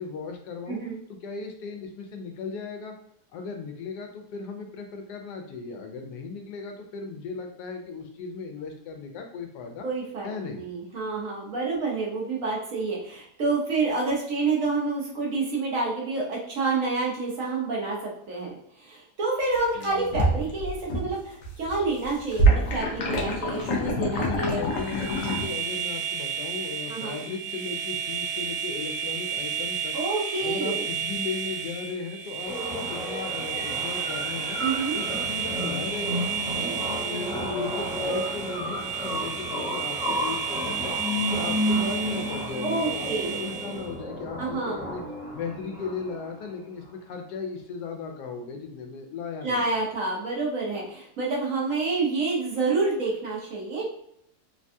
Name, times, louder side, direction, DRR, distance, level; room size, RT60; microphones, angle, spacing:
voice 1, 0.0-0.8 1.1-2.9 3.3-9.8 10.2-10.6 19.7-20.5 24.1-30.0 30.4-34.6 34.9-36.3 36.5-41.0 41.3-45.0 45.3-49.6, left 5 dB, 85° left, 4 dB, 1.2 m, -36 dB
voice 2, 0.7-1.0 9.8-24.6 26.9-27.2 29.9-30.8 34.6-35.0 42.6-43.4 44.4-44.9 49.4-53.9, right 3 dB, 60° right, -3 dB, 1.1 m, -28 dB
sound 1, 19.6-21.1 21.4-25.5, right 1 dB, 65° left, 0.9 m, -25 dB
sound 2, 24.7-43.9, right 7 dB, 85° right, 1.1 m, -32 dB
sound 3, 32.5-46.4, equal, 5° right, 0.8 m, -32 dB
3.3 x 2.2 x 2.6 m, 0.73 s
omnidirectional pair, 1.7 m